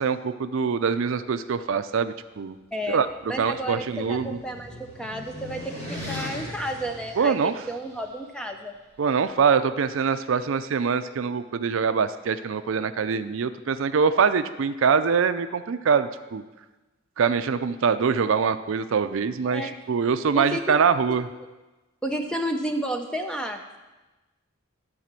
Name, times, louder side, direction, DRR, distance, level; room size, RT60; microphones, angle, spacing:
voice 1, 0.0-2.6 2.9-3.1 3.4-4.4 7.2-7.5 9.0-16.4 17.2-21.3, right 6 dB, 65° right, 11 dB, 0.4 m, -24 dB
voice 2, 2.7-8.7 19.4-19.8 20.3-20.8 21.1-21.2 22.0-23.8, equal, 5° left, 5 dB, 0.6 m, -32 dB
sound 1, 2.8-8.0, left 1 dB, 30° left, 1.9 m, -39 dB
12.5 x 4.2 x 7.4 m, 1.1 s
head